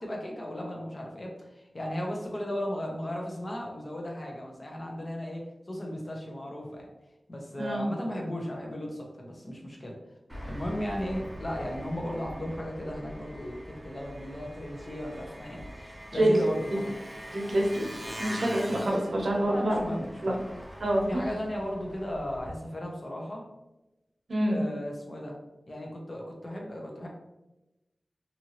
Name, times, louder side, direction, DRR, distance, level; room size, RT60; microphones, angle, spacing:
voice 1, 0.0-6.9 7.3-10.0 10.4-17.0 19.3-20.4 21.1-23.4 24.5-25.4 25.7-27.1, equal, 40° left, -1 dB, 0.7 m, -36 dB
Engine, 10.3-22.5, equal, 15° right, 0.7 m, -43 dB
voice 2, 17.3-17.9 18.2-19.8 20.2-20.4 20.8-21.2 24.3-24.6, right 1 dB, 75° right, -1 dB, 0.7 m, -26 dB
2.8 x 2.5 x 2.8 m, 0.97 s
wide cardioid pair, 85°, 0 cm